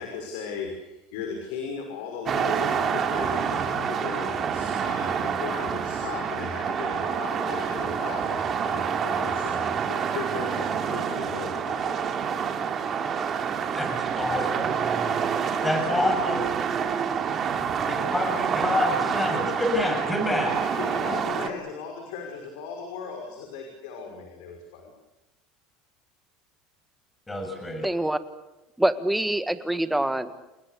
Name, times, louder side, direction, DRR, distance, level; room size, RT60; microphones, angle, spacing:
voice 1, 0.0-12.0 20.4-24.8, left 5 dB, 80° left, 3 dB, 5.8 m, -37 dB
sound 1, 2.3-21.5, right 7 dB, 30° right, 3.0 m, -27 dB
voice 2, 13.7-14.6 15.6-16.5 17.8-20.5 27.3-27.9, left 1 dB, 10° left, 4 dB, 6.9 m, -27 dB
voice 3, 27.8-28.2 28.8-30.4, right 1 dB, 5° right, 11 dB, 1.7 m, -25 dB
30.0 x 19.5 x 8.4 m, 0.96 s
supercardioid pair, 135°, 0 cm